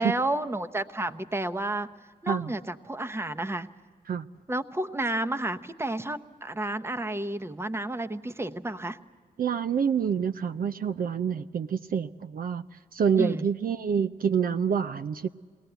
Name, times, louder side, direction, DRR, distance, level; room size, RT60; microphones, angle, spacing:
voice 1, 0.0-1.9 2.2-3.7 4.5-9.0 13.2-13.5, right 1 dB, 15° right, 9 dB, 0.9 m, -31 dB
voice 2, 9.4-12.6 12.9-15.3, right 7 dB, 60° right, 9 dB, 0.5 m, -27 dB
21.5 x 18.5 x 8.0 m, 1.6 s
cardioid pair, 65°, 17 cm